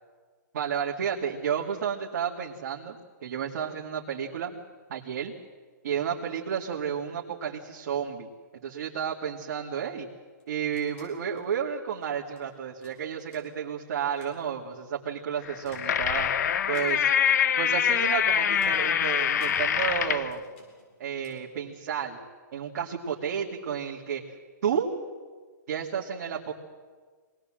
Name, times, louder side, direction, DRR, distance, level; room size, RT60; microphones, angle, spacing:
voice 1, 0.5-4.6 4.9-5.3 5.8-8.3 8.6-10.1 10.5-16.3 16.7-17.1 17.6-20.4 21.0-22.2 22.5-24.2 24.6-24.9 25.7-26.5, right 8 dB, 50° right, -3 dB, 2.3 m, -31 dB
sound 1, 10.3-12.5 12.8-13.8 14.1-14.4 15.4-16.3 16.7-17.3 18.5-20.0 20.3-21.5, left 3 dB, 40° left, 7.7 m, -53 dB
sound 2, 15.5-20.3, left 8 dB, 60° left, 0.9 m, -25 dB
24.5 x 19.5 x 7.7 m, 1.5 s
hypercardioid pair, 165°, 11 cm